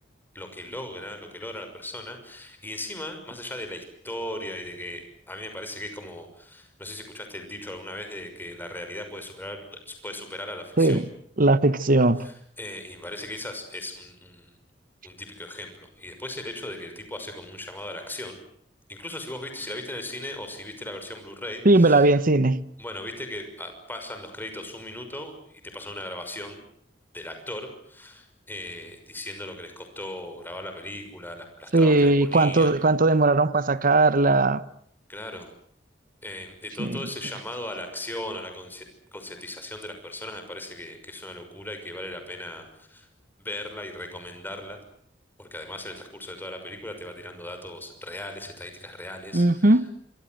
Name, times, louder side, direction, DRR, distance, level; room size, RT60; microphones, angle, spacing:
voice 1, 0.3-11.0 12.2-14.5 15.0-18.4 18.9-22.1 22.8-26.6 27.1-32.7 35.1-35.5 36.2-38.9 39.1-43.1 43.4-44.8 45.4-49.8, left 1 dB, 10° left, 6.2 m, -38 dB
voice 2, 11.4-12.2 21.6-22.6 31.7-34.6 36.8-37.0 49.3-49.9, right 2 dB, 50° right, 1.1 m, -19 dB
26.5 x 24.5 x 7.9 m
head